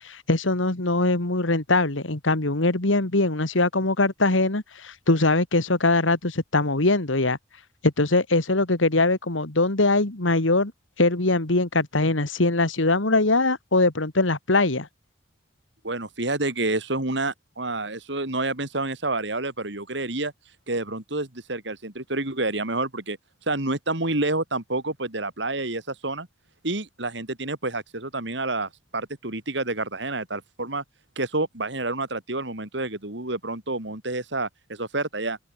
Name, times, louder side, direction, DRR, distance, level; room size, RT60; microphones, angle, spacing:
voice 1, 0.0-7.4 7.8-10.7 11.0-14.9, left 2 dB, 85° left, 2.2 m, -22 dB
voice 2, 15.8-20.3 20.7-23.2 23.5-26.3 26.6-30.8 31.1-35.4, right 2 dB, 65° right, 3.4 m, -28 dB
open air
head